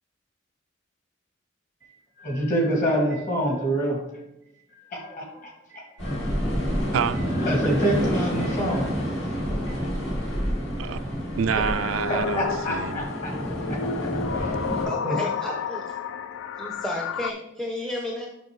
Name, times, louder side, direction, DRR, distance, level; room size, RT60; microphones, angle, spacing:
voice 1, 2.2-4.0 4.9-5.3 5.7-6.2 7.4-8.9 9.3-9.4 9.7-9.8 12.1-13.3 13.7-13.8 14.3-14.6 15.0-15.2, right 1 dB, 40° left, 2.2 m, -26 dB
sound 1, 6.0-14.9, equal, 60° left, 2.7 m, -28 dB
voice 2, 6.9-7.2 10.8-11.0 11.4-13.0, right 7 dB, 75° right, 0.3 m, -27 dB
sound 2, 11.5-17.3, left 6 dB, 80° left, 0.3 m, -31 dB
voice 3, 14.8-15.9 16.6-18.3, left 1 dB, 5° left, 0.6 m, -33 dB
7.0 x 6.0 x 3.2 m
head